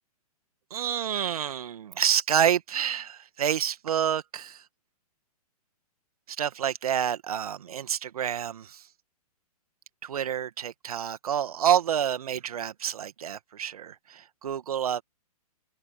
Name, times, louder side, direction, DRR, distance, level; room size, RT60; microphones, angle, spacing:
voice 1, 0.7-4.6 6.3-8.8 10.0-15.0, right 9 dB, 70° right, 1.7 m, -28 dB
hypercardioid pair, 125°, 20 cm